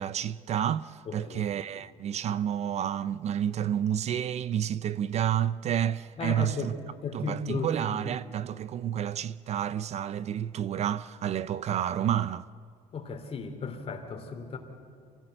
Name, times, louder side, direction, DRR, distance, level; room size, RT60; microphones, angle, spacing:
voice 1, 0.0-6.7 7.1-12.5, right 10 dB, 45° right, 0.5 m, -30 dB
voice 2, 1.1-1.4 1.7-1.8 6.2-6.7 7.0-8.2 12.9-14.6, left 4 dB, 40° left, 3.1 m, -35 dB
27.0 x 17.5 x 7.9 m
cardioid pair, 125°, 16 cm